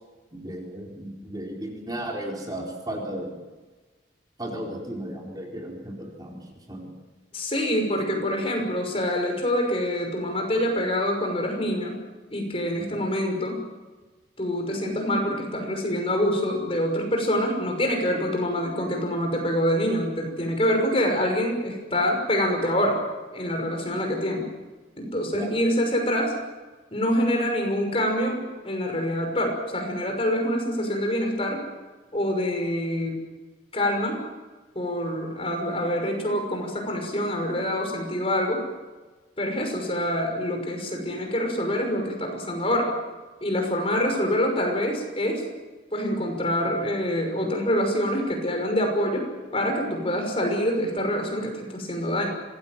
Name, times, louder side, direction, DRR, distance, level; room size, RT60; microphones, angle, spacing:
voice 1, 0.3-3.5 4.4-6.9 25.3-25.6, right 1 dB, 20° right, -1 dB, 4.4 m, -35 dB
voice 2, 7.3-11.9 12.3-13.6 14.4-23.0 23.3-24.5 25.0-26.3 26.9-31.6 32.1-33.2 33.7-34.2 34.7-38.6 39.4-42.9 43.4-45.4 45.9-49.2 49.5-52.3, equal, 30° left, 2 dB, 6.0 m, -26 dB
26.5 x 19.5 x 7.6 m, 1.3 s
head